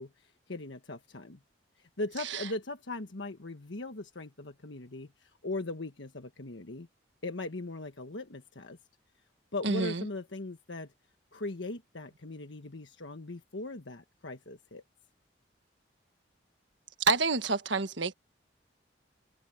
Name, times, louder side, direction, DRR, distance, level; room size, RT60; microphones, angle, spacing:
voice 1, 0.0-1.4 1.8-6.9 7.2-8.8 9.5-10.9 11.3-14.8, left 2 dB, 70° left, 1.3 m, -39 dB
voice 2, 9.6-10.0 17.0-18.1, right 4 dB, 70° right, 1.5 m, -28 dB
head